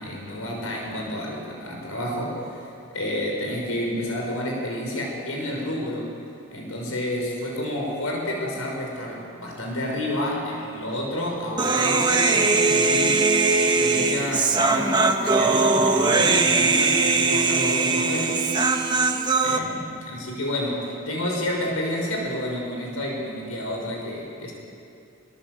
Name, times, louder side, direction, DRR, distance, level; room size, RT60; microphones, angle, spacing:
voice 1, 0.0-2.7 2.9-6.1 6.5-13.3 13.7-18.4 19.4-24.5, left 1 dB, 85° left, -1 dB, 5.8 m, -30 dB
Human voice, 11.6-19.6, right 3 dB, 20° right, 1.4 m, -20 dB
26.5 x 22.5 x 8.0 m, 2.6 s
head